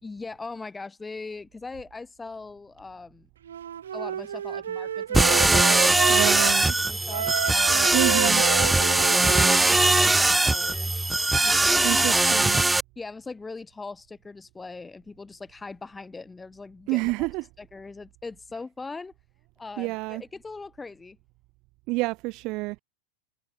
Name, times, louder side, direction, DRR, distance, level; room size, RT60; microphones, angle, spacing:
voice 1, 0.0-3.3 3.9-6.5 6.9-7.3 7.7-8.2 8.6-11.0 11.4-12.4 13.0-17.3 17.6-19.1 19.6-21.2, left 3 dB, 10° left, 6.2 m, -40 dB
Wind instrument woodwind instrument, 3.4-6.6 7.1-10.4, right 9 dB, 65° right, 1.6 m, -31 dB
sound 1, 5.1-12.8, right 2 dB, 5° right, 0.6 m, -21 dB
voice 2, 6.1-6.7 7.9-8.4 11.8-12.6 16.9-17.4 19.8-20.2 21.9-22.8, right 24 dB, 40° right, 2.0 m, -28 dB
figure-of-eight pair, 90°, 0 cm